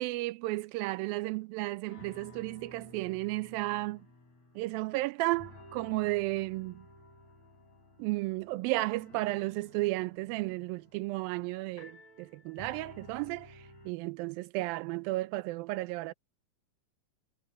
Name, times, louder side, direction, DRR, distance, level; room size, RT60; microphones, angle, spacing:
voice 1, 0.0-4.0 4.6-6.9 8.0-13.5 13.9-16.1, right 20 dB, 90° right, 2.4 m, -33 dB
sound 1, 1.6-1.7 1.9-5.1 5.3-13.9, left 2 dB, 50° left, 7.0 m, -54 dB
omnidirectional pair, 4.1 m